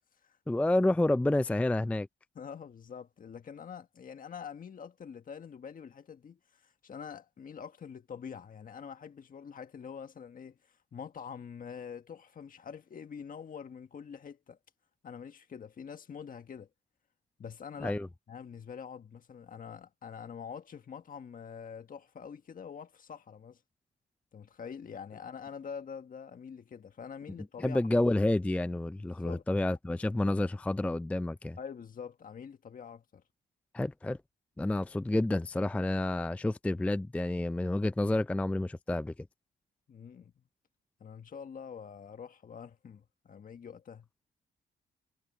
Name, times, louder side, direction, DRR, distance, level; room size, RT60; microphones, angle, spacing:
voice 1, 0.5-2.1 17.8-18.1 27.6-31.6 33.7-34.2 34.6-39.1, left 1 dB, 5° left, 0.4 m, -29 dB
voice 2, 2.3-14.6 15.0-16.7 17.4-18.0 18.3-23.6 24.3-27.8 29.2-29.4 31.6-33.2 39.9-40.3 41.0-44.1, left 7 dB, 45° left, 1.6 m, -45 dB
cardioid pair, 75°, 19 cm